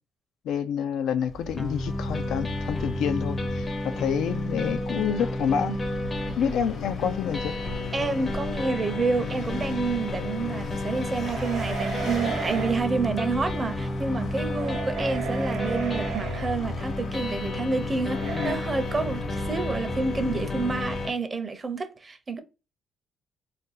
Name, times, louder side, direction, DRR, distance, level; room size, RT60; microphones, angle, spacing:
voice 1, 0.4-5.8 6.4-7.5 18.2-18.6, left 8 dB, 80° left, 0.3 m, -28 dB
Vehicle, 1.3-21.1, left 1 dB, 65° left, 0.9 m, -37 dB
sound 1, 1.6-21.1, left 2 dB, 30° left, 0.6 m, -32 dB
voice 2, 7.9-22.4, right 3 dB, 30° right, 0.6 m, -29 dB
sound 2, 11.2-12.9 14.4-16.6 18.1-18.6, right 5 dB, 90° right, 0.7 m, -34 dB
2.5 x 2.2 x 3.9 m
cardioid pair, 90°, 0 cm